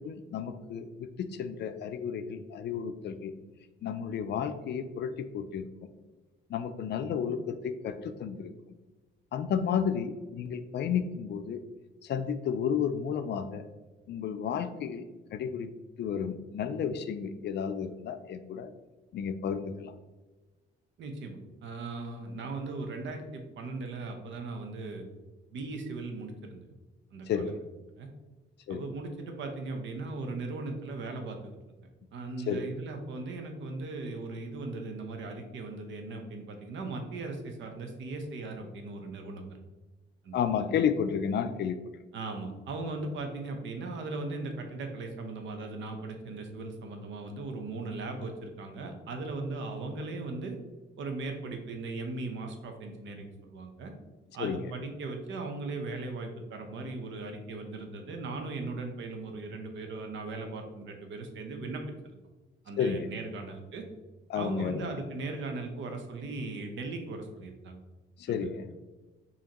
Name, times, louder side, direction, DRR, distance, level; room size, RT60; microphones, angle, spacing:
voice 1, 0.0-3.3 3.8-5.9 6.5-8.5 9.3-11.6 12.0-13.7 14.1-15.7 16.0-18.7 19.1-19.9 27.3-27.6 28.7-28.8 32.5-32.7 40.3-41.8 54.4-54.6 62.8-63.1 64.3-64.9 68.2-68.7, left 7 dB, 60° left, 9 dB, 0.4 m, -32 dB
voice 2, 21.0-25.0 25.5-26.6 27.1-27.5 28.0-28.1 28.7-31.6 32.1-39.6 40.2-40.7 42.1-50.6 51.0-53.9 54.3-61.8 62.6-63.8 64.3-67.8 68.3-68.5, right 3 dB, 70° right, 4 dB, 0.8 m, -38 dB
5.0 x 2.8 x 2.9 m, 1.2 s
cardioid pair, 90°, 20 cm